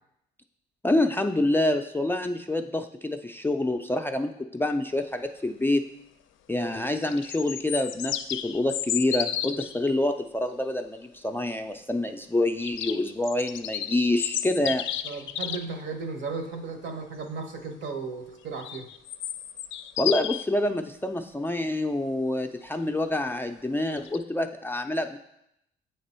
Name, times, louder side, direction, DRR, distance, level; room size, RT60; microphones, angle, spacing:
voice 1, 0.8-5.9 6.5-14.8 20.0-25.2, left 1 dB, 10° left, 5 dB, 0.3 m, -27 dB
sound 1, 6.9-9.8 12.6-15.7 18.6-20.4 24.0-24.2, left 11 dB, 75° left, 0.4 m, -32 dB
voice 2, 9.5-9.9 15.0-18.9, right 4 dB, 65° right, 5 dB, 1.0 m, -36 dB
7.7 x 3.4 x 4.3 m, 0.78 s
cardioid pair, 90°, 20 cm